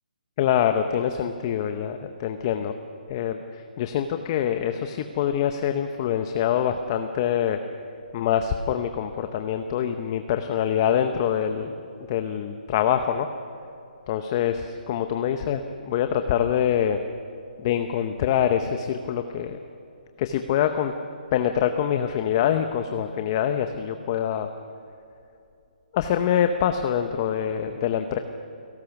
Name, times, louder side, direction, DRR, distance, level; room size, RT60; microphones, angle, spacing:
voice 1, 0.4-2.7 3.1-3.4 3.8-7.6 8.1-11.7 12.1-13.3 14.1-17.0 17.6-19.6 20.2-20.9 21.3-24.5 25.9-28.2, left 9 dB, 25° left, 7 dB, 0.8 m, -25 dB
29.0 x 18.5 x 6.0 m, 2.6 s
hypercardioid pair, 170°, 5 cm